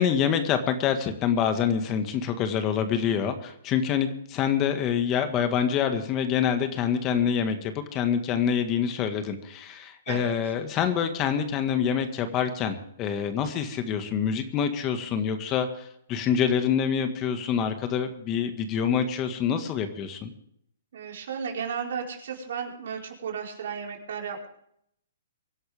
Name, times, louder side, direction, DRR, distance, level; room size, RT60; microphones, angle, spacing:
voice 1, 0.0-20.3, left 8 dB, 30° left, 8 dB, 1.8 m, -26 dB
voice 2, 10.1-10.5 20.9-24.5, right 6 dB, 65° right, 1 dB, 4.7 m, -34 dB
24.0 x 11.5 x 3.6 m, 0.71 s
hypercardioid pair, 135°, 0 cm